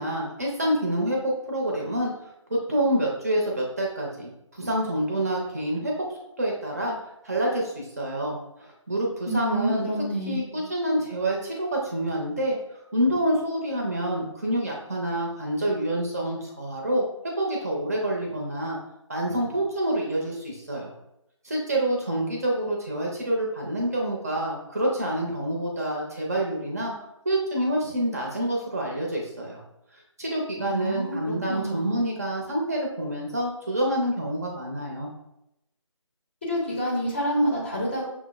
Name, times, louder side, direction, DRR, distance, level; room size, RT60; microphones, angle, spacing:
voice 1, 0.0-2.1 2.5-5.9 6.4-7.0 7.2-17.0 17.4-18.8 19.1-20.9 21.4-26.9 27.2-29.6 30.2-35.1, right 1 dB, 30° right, -2 dB, 0.6 m, -27 dB
voice 2, 9.3-10.4 30.6-32.0 36.5-38.1, equal, 20° left, -4 dB, 0.6 m, -28 dB
5.9 x 2.0 x 2.3 m, 0.84 s
figure-of-eight pair, 160°, 16 cm